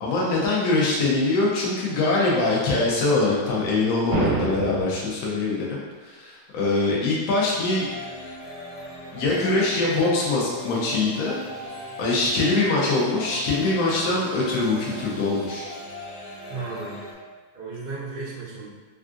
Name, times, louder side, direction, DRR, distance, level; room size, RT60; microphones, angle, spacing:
voice 1, 0.0-7.9 9.1-11.4 12.0-15.7, left 3 dB, 75° left, -5 dB, 0.8 m, -23 dB
sound 1, 4.1-5.1, right 3 dB, 80° right, 1.4 m, -26 dB
sound 2, 7.6-17.1, left 1 dB, 25° left, 0.3 m, -39 dB
voice 2, 16.5-17.0 17.5-18.7, right 4 dB, 60° right, -7 dB, 0.5 m, -34 dB
3.4 x 2.4 x 2.5 m, 1.3 s
omnidirectional pair, 2.2 m